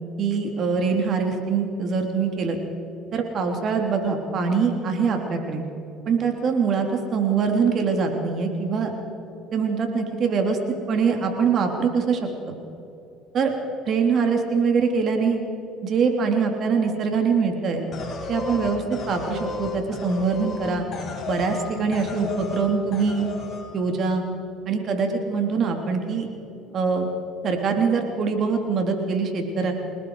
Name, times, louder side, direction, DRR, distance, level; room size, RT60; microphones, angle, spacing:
voice 1, 0.2-2.6 3.1-5.6 6.1-8.9 9.5-10.6 10.9-12.2 12.5-12.6 13.3-13.5 13.9-15.4 15.8-17.8 18.3-20.9 21.3-23.3 23.7-24.2 24.7-26.3 26.7-27.1 27.4-29.7, right 5 dB, 50° right, 4 dB, 3.2 m, -23 dB
sound 1, 17.9-21.7 21.9-22.6 22.9-23.6, left 4 dB, 40° left, 6.2 m, -33 dB
29.5 x 19.0 x 4.8 m, 2.9 s
supercardioid pair, 95°, 0 cm